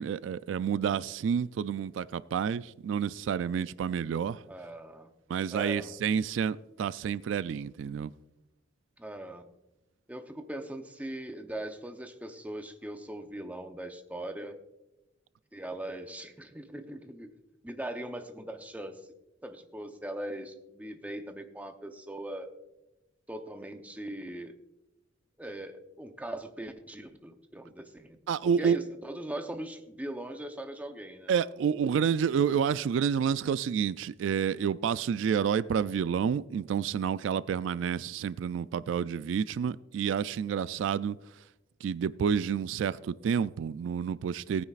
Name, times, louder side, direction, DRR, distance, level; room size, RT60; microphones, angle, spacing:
voice 1, 0.0-4.4 5.3-8.1 28.3-28.8 31.3-41.2 41.8-44.6, right 7 dB, 85° right, 0.3 m, -29 dB
voice 2, 4.5-5.1 5.5-5.9 9.0-9.4 10.1-14.6 15.5-17.3 17.6-19.1 19.4-22.5 23.3-24.6 25.4-28.2 28.6-31.4, right 1 dB, 10° right, 0.7 m, -40 dB
18.0 x 9.6 x 2.4 m
head